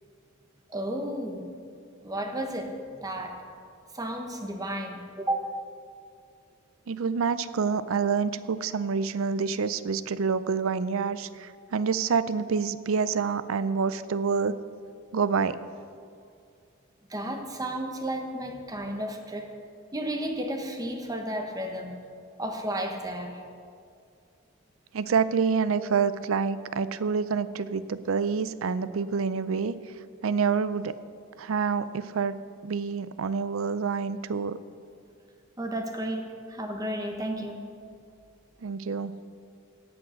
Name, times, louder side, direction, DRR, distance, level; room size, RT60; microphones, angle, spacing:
voice 1, 0.7-1.5 2.0-3.4 3.9-5.5 17.1-19.5 19.9-22.0 22.4-23.4 35.6-37.6, right 1 dB, 15° right, 4 dB, 1.0 m, -33 dB
voice 2, 6.9-14.6 15.1-15.6 24.9-29.7 30.2-30.9 31.4-32.3 32.6-34.6 38.6-39.1, right 5 dB, 75° right, 15 dB, 0.5 m, -27 dB
17.0 x 6.2 x 6.3 m, 2.3 s
head